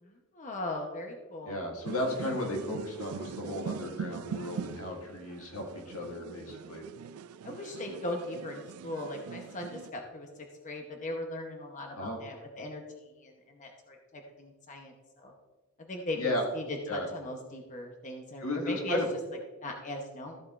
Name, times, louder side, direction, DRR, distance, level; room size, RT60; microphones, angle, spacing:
voice 1, 0.0-1.6 7.4-10.3 10.6-15.3 15.8-19.0 19.6-20.4, left 1 dB, 35° left, 2 dB, 0.9 m, -39 dB
voice 2, 1.4-6.8 12.0-12.2 16.2-16.5 16.9-17.1 18.4-19.1, left 1 dB, 80° left, 1 dB, 1.9 m, -34 dB
sound 1, 1.9-9.9, right 7 dB, 80° right, 0.3 m, -42 dB
14.0 x 7.8 x 2.5 m, 1.3 s
head